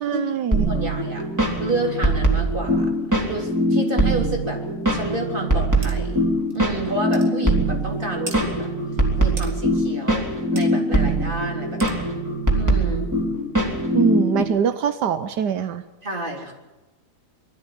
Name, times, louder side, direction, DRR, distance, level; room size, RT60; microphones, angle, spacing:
voice 1, 0.0-0.7 13.9-15.8, right 8 dB, 85° right, 10 dB, 1.5 m, -23 dB
sound 1, 0.5-14.4, right 1 dB, 10° right, 3.7 m, -22 dB
voice 2, 0.7-1.3 1.6-2.9 3.2-4.6 4.9-6.2 6.5-8.7 9.2-12.1 12.5-13.1 16.0-16.5, right 1 dB, 30° right, 1 dB, 3.8 m, -29 dB
sound 2, 5.8-6.0 6.5-6.6 7.1-7.3 8.3-8.4 9.4-9.5 10.6-10.7 11.8-12.0, right 3 dB, 50° right, 2.6 m, -36 dB
22.5 x 13.5 x 9.2 m, 1.1 s
omnidirectional pair, 1.8 m